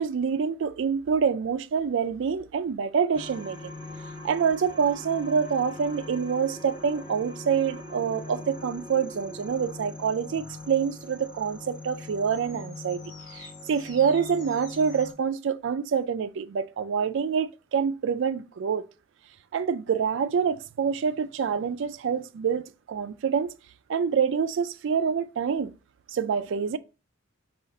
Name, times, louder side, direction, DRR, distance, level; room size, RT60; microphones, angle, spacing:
voice 1, 0.0-3.7 4.2-13.0 13.3-18.8 19.5-23.5 23.9-25.7 26.1-26.8, right 6 dB, 60° right, 0.3 m, -26 dB
sound 1, 3.1-15.1, left 2 dB, 35° left, 2.6 m, -42 dB
5.1 x 2.4 x 3.7 m
head